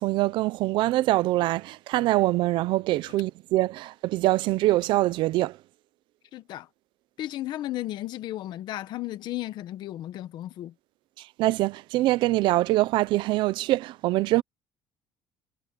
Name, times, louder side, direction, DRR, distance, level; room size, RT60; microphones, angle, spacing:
voice 1, 0.0-5.6 11.4-14.4, right 17 dB, 70° right, 0.7 m, -24 dB
voice 2, 6.3-6.7 7.2-10.7, left 14 dB, 60° left, 1.4 m, -34 dB
cardioid pair, 145°, 8 cm